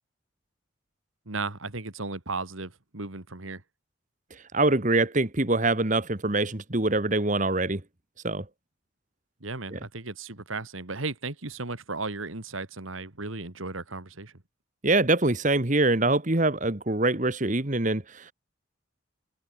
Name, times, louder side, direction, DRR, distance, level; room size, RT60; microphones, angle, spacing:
voice 1, 1.3-3.6 9.4-14.4, right 3 dB, 85° right, 2.5 m, -35 dB
voice 2, 4.5-7.8 8.2-8.4 9.7-9.8 14.8-18.3, right 2 dB, 40° right, 1.7 m, -24 dB
open air
head